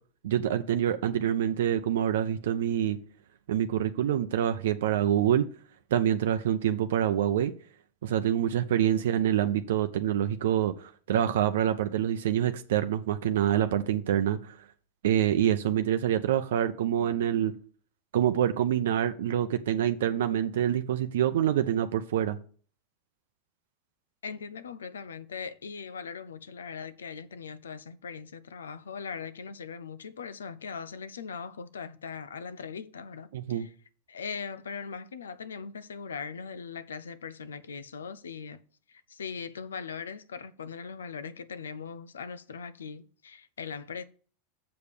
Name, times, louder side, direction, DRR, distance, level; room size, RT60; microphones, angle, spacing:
voice 1, 0.2-3.0 3.5-5.5 5.9-7.5 8.0-14.6 15.0-17.5 18.1-22.4 33.3-33.7, right 10 dB, 75° right, 0.6 m, -26 dB
voice 2, 24.2-33.7 34.1-38.6 38.9-44.0, left 6 dB, 85° left, 0.6 m, -40 dB
6.9 x 5.1 x 6.7 m
hypercardioid pair, 95°, 0 cm